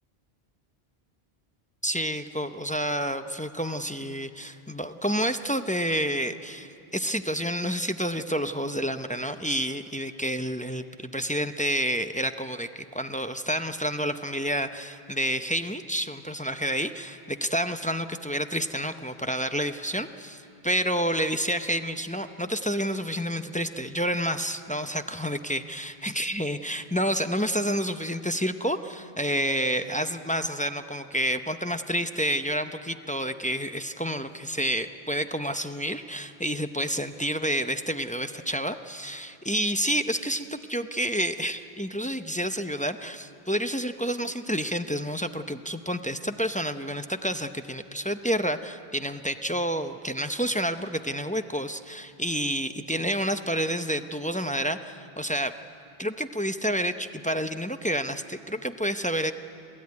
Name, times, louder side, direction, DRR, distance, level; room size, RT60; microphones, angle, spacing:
voice 1, 1.8-55.5 56.0-59.3, equal, 10° left, 8 dB, 0.5 m, -29 dB
26.5 x 16.0 x 9.5 m, 2.8 s
omnidirectional pair, 1.0 m